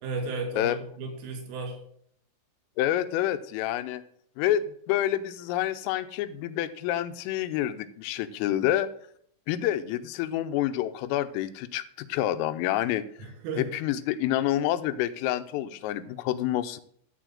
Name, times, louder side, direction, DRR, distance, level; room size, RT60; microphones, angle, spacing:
voice 1, 0.0-1.8 13.2-13.6, right 3 dB, 80° right, 3 dB, 5.2 m, -34 dB
voice 2, 2.8-4.0 4.4-8.9 9.5-13.1 13.6-16.8, left 12 dB, 85° left, 12 dB, 3.2 m, -28 dB
13.5 x 4.5 x 7.6 m, 0.64 s
omnidirectional pair, 5.8 m